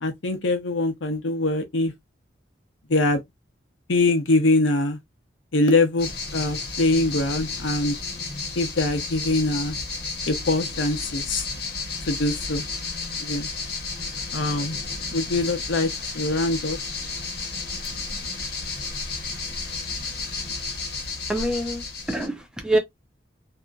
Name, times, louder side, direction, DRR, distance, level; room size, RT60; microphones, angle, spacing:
voice 1, 0.0-1.9 2.9-3.2 3.9-5.0 5.5-7.9 8.6-9.7 10.3-11.5 12.1-12.6 13.2-13.5 14.3-14.8 15.1-16.8, left 2 dB, 80° left, 0.7 m, -23 dB
sound 1, 6.0-22.3, left 4 dB, 55° left, 1.1 m, -32 dB
voice 2, 21.3-22.8, right 1 dB, 5° right, 0.5 m, -25 dB
2.8 x 2.5 x 2.3 m
head